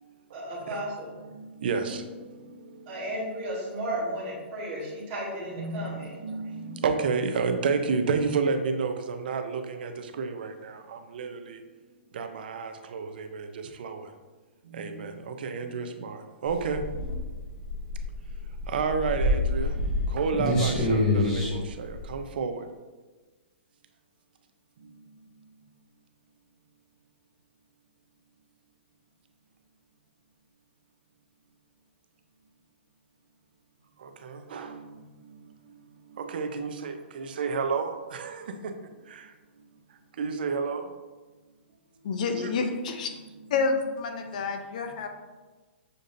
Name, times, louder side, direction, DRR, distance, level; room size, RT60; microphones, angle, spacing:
voice 1, 0.3-1.1 2.9-6.2, right 1 dB, 25° right, -7 dB, 1.0 m, -34 dB
voice 2, 1.2-2.1 5.6-11.6 12.1-14.1 14.7-16.8 18.7-19.8 20.1-22.7 34.0-35.1 36.2-38.7 39.1-39.3 40.2-40.9 42.4-42.5 43.5-43.6, right 5 dB, 50° right, 7 dB, 0.4 m, -31 dB
sound 1, 16.5-22.3, left 1 dB, 10° left, 0.7 m, -27 dB
voice 3, 42.0-43.1 43.5-45.1, left 4 dB, 40° left, 6 dB, 0.4 m, -29 dB
6.5 x 2.6 x 2.6 m, 1.3 s
hypercardioid pair, 175°, 6 cm